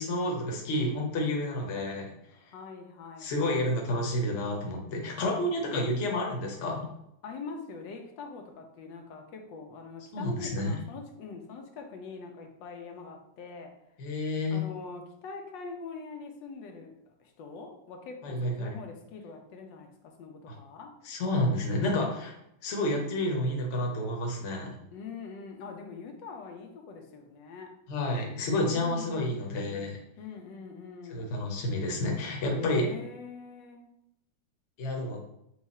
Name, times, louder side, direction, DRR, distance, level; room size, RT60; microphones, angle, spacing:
voice 1, 0.0-2.1 3.2-6.9 10.1-10.7 14.0-14.6 18.2-18.7 20.5-20.6 21.0-22.3 22.6-24.7 27.9-30.0 31.1-32.9 34.8-35.2, left 1 dB, 50° left, 0 dB, 1.0 m, -30 dB
voice 2, 2.4-3.7 7.2-13.7 14.5-20.9 24.9-27.8 28.7-29.9 30.2-31.4 32.5-33.9, left 4 dB, 85° left, 3 dB, 1.3 m, -43 dB
4.6 x 2.4 x 4.1 m, 0.80 s
omnidirectional pair, 2.0 m